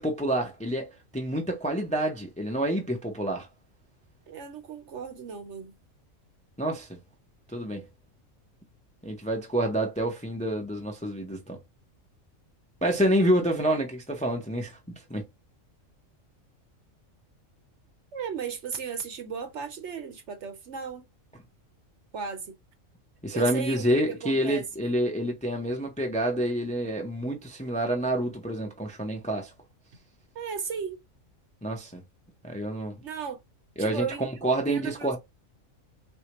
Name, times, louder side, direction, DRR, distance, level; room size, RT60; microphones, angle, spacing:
voice 1, 0.0-3.5 6.6-7.0 7.5-7.9 9.0-11.6 12.8-15.3 23.2-29.5 31.6-32.0 32.4-33.0 33.8-35.2, right 1 dB, 10° left, 0.5 m, -28 dB
voice 2, 4.3-5.8 18.1-21.1 22.1-22.6 23.3-24.6 30.3-31.0 33.0-33.4 33.8-35.1, right 6 dB, 65° right, 1.0 m, -35 dB
4.3 x 2.2 x 2.9 m
omnidirectional pair, 1.4 m